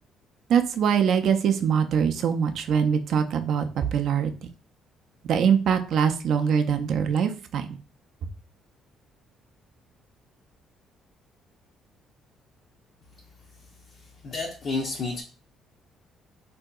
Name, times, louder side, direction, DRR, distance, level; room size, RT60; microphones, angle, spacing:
voice 1, 0.5-4.3 5.3-7.7, right 7 dB, 65° right, 6 dB, 0.3 m, -23 dB
voice 2, 13.5-15.2, left 3 dB, 55° left, 1 dB, 0.5 m, -32 dB
3.5 x 2.7 x 2.3 m, 0.38 s
cardioid pair, 95°, 0 cm